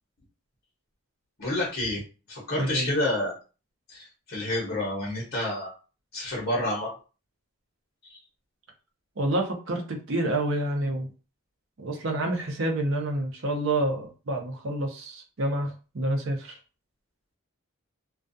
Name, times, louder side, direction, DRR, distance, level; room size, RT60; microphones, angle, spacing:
voice 1, 1.4-2.0 2.3-3.3 3.9-5.7 6.1-6.9, left 1 dB, 45° left, -5 dB, 0.9 m, -29 dB
voice 2, 2.6-2.9 9.2-11.1 11.8-16.6, right 1 dB, 60° right, 2 dB, 0.6 m, -28 dB
2.3 x 2.3 x 2.5 m, 0.34 s
head